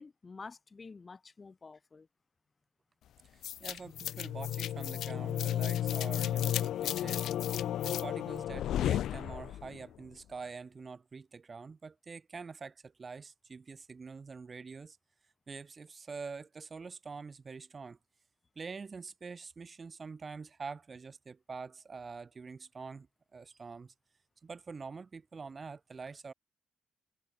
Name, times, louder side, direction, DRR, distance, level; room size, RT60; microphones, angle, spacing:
voice 1, 0.0-2.1, left 4 dB, 35° left, 3.2 m, -49 dB
voice 2, 3.3-15.0 15.5-18.0 18.6-23.1 23.3-23.9 24.4-26.3, right 4 dB, 40° right, 2.7 m, -45 dB
sound 1, 3.4-9.8, left 11 dB, 80° left, 0.4 m, -33 dB
cardioid pair, 75°, 0 cm